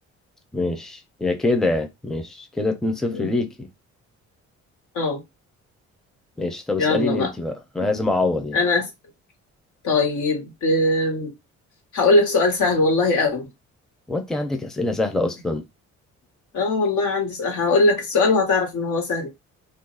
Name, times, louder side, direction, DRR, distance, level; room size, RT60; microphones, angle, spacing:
voice 1, 0.5-3.7 6.4-8.6 14.1-15.6, left 2 dB, ahead, 0.6 m, -25 dB
voice 2, 6.8-7.3 8.5-8.9 9.8-11.3 11.9-13.4 16.5-19.3, left 3 dB, 80° left, 1.4 m, -20 dB
2.5 x 2.2 x 3.8 m
cardioid pair, 90°, 30 cm